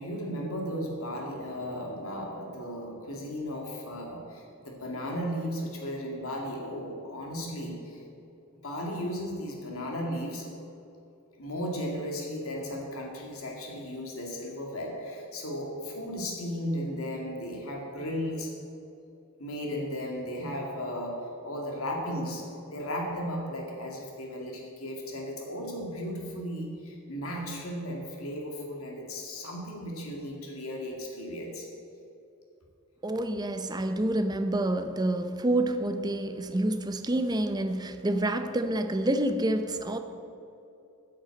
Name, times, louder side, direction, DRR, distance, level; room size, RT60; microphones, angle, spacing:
voice 1, 0.0-8.0 8.6-10.5 11.4-18.5 19.4-31.7, equal, 85° left, 0 dB, 2.2 m, -35 dB
voice 2, 33.0-40.0, right 1 dB, 20° right, 8 dB, 0.6 m, -28 dB
9.5 x 6.5 x 8.3 m, 2.7 s
head